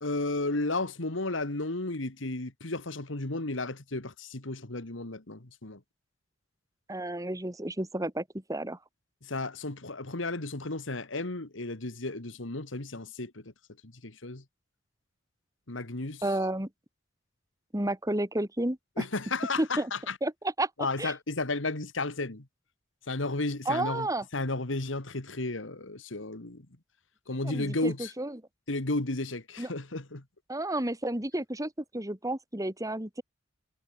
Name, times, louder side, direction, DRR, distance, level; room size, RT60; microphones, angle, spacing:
voice 1, 0.0-5.8 9.2-13.4 13.8-14.4 15.7-16.2 19.0-20.2 20.8-22.5 23.1-24.1 24.3-26.7 27.3-28.1 28.7-30.2, left 2 dB, 80° left, 2.1 m, -33 dB
voice 2, 6.9-8.2 8.5-8.8 16.2-16.7 17.7-19.0 19.6-19.9 20.2-20.7 21.0-21.1 23.7-24.2 27.4-28.4 29.6-29.7 30.5-33.2, right 1 dB, 20° right, 2.5 m, -31 dB
head